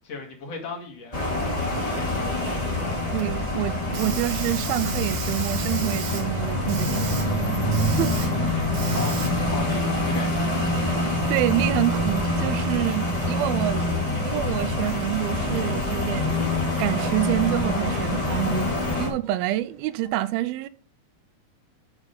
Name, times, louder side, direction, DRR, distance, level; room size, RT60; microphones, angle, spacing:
voice 1, 0.0-3.2 6.9-7.7 8.4-10.8, left 4 dB, 45° left, 2.8 m, -38 dB
sound 1, 1.1-19.1, left 1 dB, 10° left, 2.3 m, -25 dB
Hiss, 1.7-20.1, right 7 dB, 65° right, 2.7 m, -40 dB
voice 2, 3.1-7.1 8.0-8.4 11.3-13.9 14.3-16.5 16.8-18.7 19.0-20.7, right 15 dB, 85° right, 2.4 m, -27 dB
7.2 x 6.8 x 5.2 m
omnidirectional pair, 4.4 m